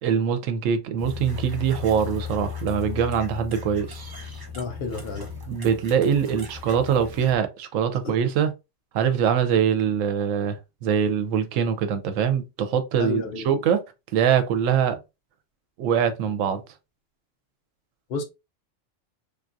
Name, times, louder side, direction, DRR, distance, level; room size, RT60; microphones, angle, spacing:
voice 1, 0.0-4.1 5.5-8.5 8.9-13.8 14.1-15.0 15.8-16.6, right 8 dB, 85° right, 1.0 m, -23 dB
sound 1, 1.0-7.4, left 6 dB, 30° right, 0.5 m, -36 dB
voice 2, 4.5-5.4 8.0-8.1 13.0-13.5 18.1-18.2, left 4 dB, 60° left, 0.8 m, -31 dB
3.5 x 2.3 x 2.5 m
omnidirectional pair, 1.3 m